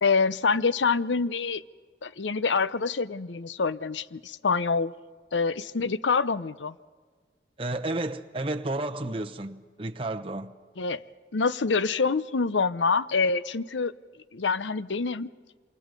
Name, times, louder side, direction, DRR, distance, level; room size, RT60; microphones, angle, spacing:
voice 1, 0.0-1.6 2.0-4.9 5.3-6.7 10.8-11.0 11.3-13.9 14.3-15.3, left 4 dB, 90° left, 0.7 m, -26 dB
voice 2, 7.6-10.5, right 2 dB, 30° right, 0.9 m, -32 dB
28.0 x 26.5 x 5.3 m
head